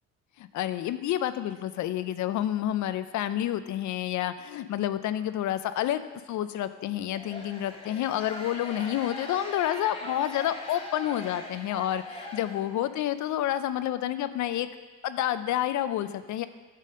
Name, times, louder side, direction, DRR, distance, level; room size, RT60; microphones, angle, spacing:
voice 1, 0.4-6.0 6.3-14.7 15.0-16.5, left 12 dB, 75° left, 12 dB, 0.5 m, -29 dB
sound 1, 7.1-13.0, left 1 dB, 20° left, 1.6 m, -41 dB
8.9 x 4.1 x 6.3 m, 1.3 s
cardioid pair, 90°, 30 cm